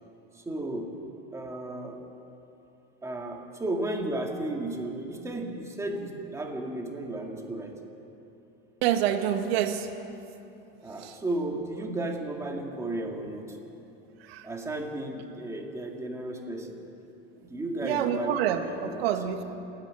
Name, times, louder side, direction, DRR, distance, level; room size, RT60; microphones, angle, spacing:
voice 1, 0.3-1.0 1.3-2.0 3.0-7.8 10.8-13.6 14.4-16.8 17.4-19.1, right 1 dB, 10° right, 1 dB, 2.1 m, -34 dB
voice 2, 8.8-9.9 11.0-11.2 14.2-14.5 17.8-19.4, right 9 dB, 85° right, 5 dB, 2.0 m, -27 dB
28.0 x 10.5 x 9.5 m, 2.9 s
supercardioid pair, 160°, 30 cm